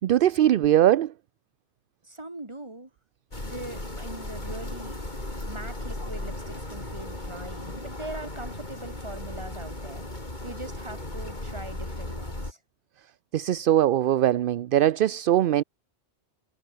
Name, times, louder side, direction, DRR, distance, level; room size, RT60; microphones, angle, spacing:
voice 1, 0.0-1.1 13.3-15.6, right 12 dB, 60° right, 0.7 m, -21 dB
voice 2, 2.0-2.9 3.4-10.0 10.4-12.6, right 2 dB, 25° right, 2.6 m, -41 dB
sound 1, 3.3-12.5, left 1 dB, 40° left, 4.5 m, -36 dB
omnidirectional pair, 1.1 m